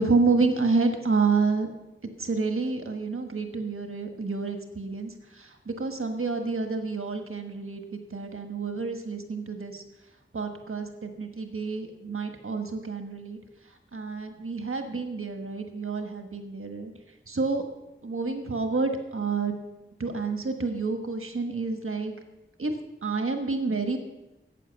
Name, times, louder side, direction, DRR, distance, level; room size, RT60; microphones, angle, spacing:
voice 1, 0.0-1.7 2.2-9.8 10.3-13.4 13.9-16.9 17.3-17.6 18.0-19.5 20.0-22.1 22.6-22.8 23.0-24.0, right 4 dB, 85° right, 5 dB, 1.3 m, -29 dB
14.5 x 8.7 x 6.9 m, 0.98 s
wide cardioid pair, 55°, 21 cm